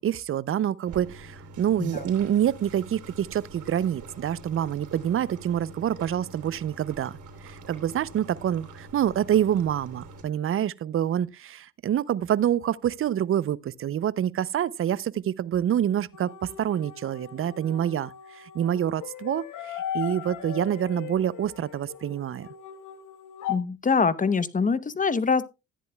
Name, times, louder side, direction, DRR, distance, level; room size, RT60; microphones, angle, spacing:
voice 1, 0.0-7.2 7.4-22.5, right 10 dB, 45° right, 0.5 m, -27 dB
sound 1, 0.9-10.2, right 3 dB, 75° right, 3.4 m, -44 dB
sound 2, 16.1-23.6, left 10 dB, 80° left, 1.3 m, -38 dB
voice 2, 23.5-25.4, left 5 dB, 25° left, 0.8 m, -24 dB
14.0 x 10.0 x 2.2 m
cardioid pair, 90°, 30 cm